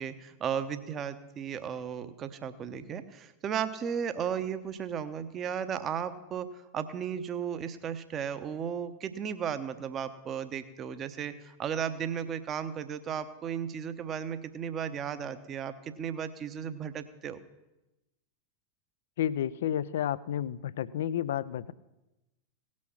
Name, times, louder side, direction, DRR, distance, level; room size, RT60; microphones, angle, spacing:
voice 1, 0.0-17.4, right 8 dB, 30° right, 11 dB, 0.8 m, -35 dB
voice 2, 19.2-21.7, left 10 dB, 60° left, 19 dB, 0.4 m, -31 dB
17.5 x 6.4 x 5.7 m, 1.0 s
figure-of-eight pair, 90°, 0 cm